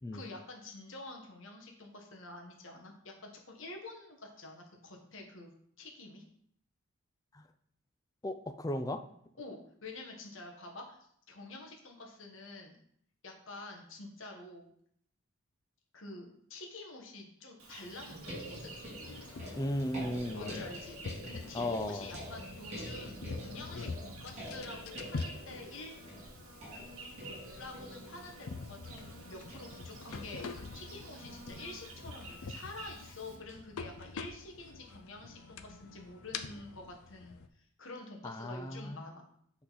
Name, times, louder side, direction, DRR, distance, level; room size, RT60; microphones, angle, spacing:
voice 1, 0.1-5.5 5.8-6.2 9.4-11.0 11.3-12.8 13.2-14.7 15.9-18.7 20.3-21.0 21.2-26.0 26.7-26.9 27.4-39.3, left 2 dB, 60° left, 1 dB, 1.3 m, -48 dB
voice 2, 8.2-9.0 19.6-20.6 21.5-22.1 38.2-39.1, left 1 dB, 15° left, 8 dB, 0.4 m, -36 dB
Insect, 17.6-33.4, right 3 dB, 75° right, 1.3 m, -51 dB
sound 1, 18.1-33.5 34.5-34.7, equal, 30° right, 2.1 m, -48 dB
sound 2, 19.0-37.5, left 4 dB, 85° left, 0.5 m, -46 dB
8.4 x 3.8 x 4.1 m, 0.68 s
head